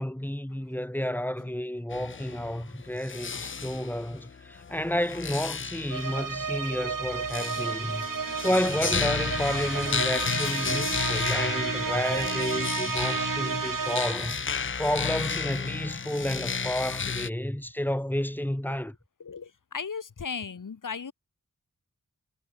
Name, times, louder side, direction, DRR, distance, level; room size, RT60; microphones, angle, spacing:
voice 1, 0.0-8.1 8.3-14.3 14.8-18.9, left 1 dB, 5° left, 4.4 m, -31 dB
sound 1, 1.9-17.3, left 5 dB, 40° left, 0.6 m, -33 dB
voice 2, 3.3-3.6 6.0-6.1 8.3-8.4 10.3-11.1 19.2-21.1, left 5 dB, 75° left, 2.0 m, -38 dB
sound 2, 5.9-14.4, right 6 dB, 90° right, 2.7 m, -32 dB
wide cardioid pair, 90°, 32 cm